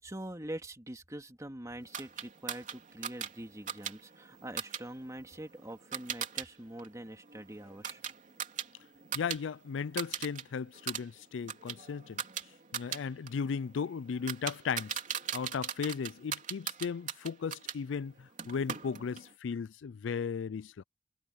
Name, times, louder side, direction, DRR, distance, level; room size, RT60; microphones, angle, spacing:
voice 1, 0.0-8.0, right 1 dB, 20° right, 2.5 m, -44 dB
sound 1, 1.9-6.5 6.8-9.4 9.7-10.4 10.7-17.8 18.4-19.3, right 8 dB, 45° right, 3.4 m, -40 dB
voice 2, 9.1-12.2 12.7-15.0 15.3-20.8, left 6 dB, 90° left, 0.4 m, -36 dB
head